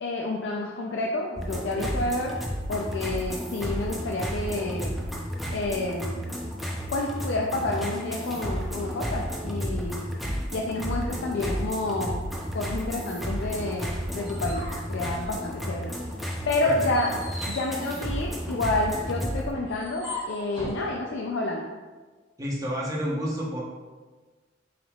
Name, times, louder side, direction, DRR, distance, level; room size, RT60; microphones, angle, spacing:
voice 1, 0.0-2.3 2.7-4.9 5.5-6.3 6.9-10.1 10.5-12.2 12.5-14.6 14.9-15.9 16.5-17.1 17.5-21.7, left 2 dB, 70° left, -1 dB, 0.4 m, -29 dB
sound 1, 1.4-19.5, equal, ahead, 0.5 m, -32 dB
sound 2, 13.8-15.8 16.2-20.9, left 2 dB, 25° left, 1.2 m, -41 dB
voice 2, 16.6-16.9 22.4-23.6, equal, 20° right, -5 dB, 0.9 m, -30 dB
6.0 x 3.6 x 2.4 m, 1.3 s
head